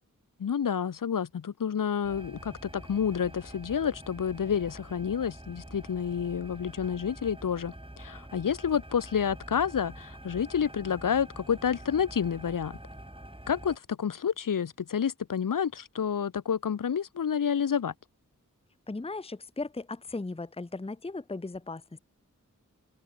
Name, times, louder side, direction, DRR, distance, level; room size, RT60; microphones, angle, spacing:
voice 1, 0.4-12.8 13.5-17.9, left 7 dB, 85° left, 0.6 m, -29 dB
sound 1, 2.0-13.8, right 1 dB, 15° right, 5.8 m, -46 dB
voice 2, 18.9-22.0, left 3 dB, 20° left, 0.7 m, -37 dB
wide cardioid pair, 60°, 32 cm